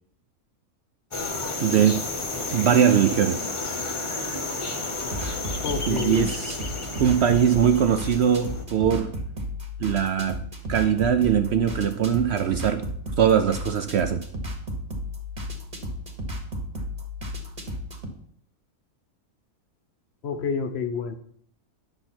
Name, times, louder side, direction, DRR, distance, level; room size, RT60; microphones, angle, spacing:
sound 1, 1.1-8.6, left 3 dB, 25° left, 0.8 m, -32 dB
voice 1, 1.6-2.1 2.5-3.5 5.9-6.6 7.0-9.1 9.8-12.9 13.2-14.2, right 8 dB, 75° right, 0.6 m, -21 dB
sound 2, 5.0-18.1, left 1 dB, 30° right, 1.3 m, -34 dB
voice 2, 5.6-6.3 20.2-21.1, left 6 dB, 50° left, 0.9 m, -28 dB
9.7 x 6.7 x 4.4 m
omnidirectional pair, 1.6 m